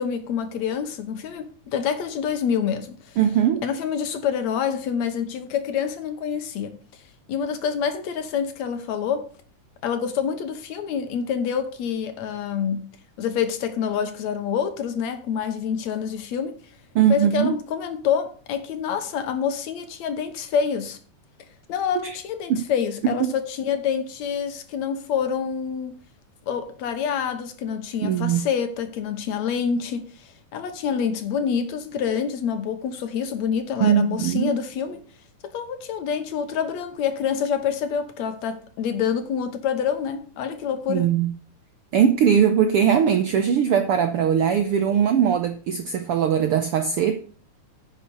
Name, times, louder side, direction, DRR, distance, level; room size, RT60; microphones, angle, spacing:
voice 1, 0.0-3.2 3.6-6.8 7.3-9.3 9.8-12.9 13.2-16.5 17.1-21.0 21.7-26.0 26.5-35.0 35.4-41.1, left 7 dB, 70° left, 2.3 m, -27 dB
voice 2, 3.2-3.6 16.9-17.5 22.0-22.2 22.5-22.6 28.0-28.4 33.8-34.5 40.9-41.3 41.9-47.2, right 8 dB, 75° right, 1.3 m, -20 dB
10.5 x 6.1 x 6.9 m
omnidirectional pair, 3.5 m